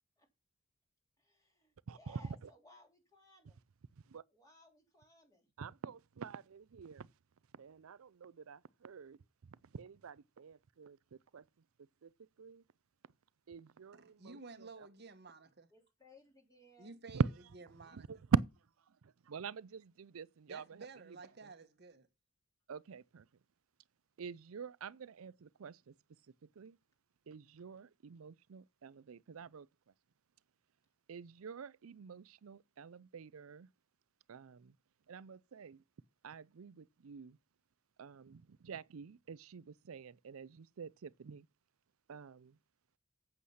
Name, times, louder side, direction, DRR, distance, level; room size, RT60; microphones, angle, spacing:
voice 1, 1.2-3.6 4.3-5.5 15.7-17.0, left 1 dB, 15° left, 3.0 m, -63 dB
voice 2, 1.9-2.2 4.1-4.2 5.6-7.1 7.5-9.2 9.4-11.4 12.0-12.6 13.5-14.9 17.1-17.3 18.1-18.4 19.0-21.2 22.7-23.3 24.2-25.9 26.6-26.8 27.3-29.7 31.1-33.7 34.3-34.7 35.1-35.8 36.2-37.4 38.0-41.5 42.1-42.6, right 5 dB, 85° right, 0.5 m, -43 dB
voice 3, 13.9-15.7 16.8-17.2 17.5-18.2 20.5-22.1, right 4 dB, 50° right, 1.2 m, -53 dB
8.4 x 8.0 x 5.7 m
head